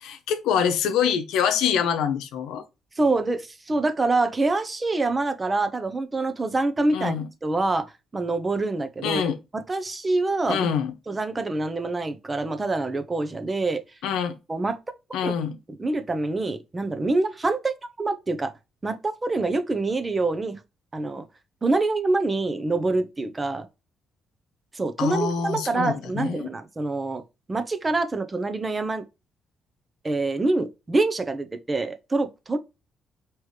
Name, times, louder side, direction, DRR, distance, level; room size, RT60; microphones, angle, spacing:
voice 1, 0.0-2.6 6.9-7.2 9.0-9.4 10.5-10.9 14.0-14.4 15.1-15.5 25.0-26.5, left 7 dB, 90° left, 0.8 m, -25 dB
voice 2, 3.0-7.2 7.4-9.2 9.5-10.7 11.1-13.8 14.5-14.8 15.2-15.3 15.8-18.5 18.8-20.6 20.9-21.2 21.6-23.7 24.7-27.2 27.5-29.0 30.0-32.6, right 2 dB, 25° right, 0.7 m, -25 dB
4.8 x 3.1 x 3.1 m
cardioid pair, 90°, 0 cm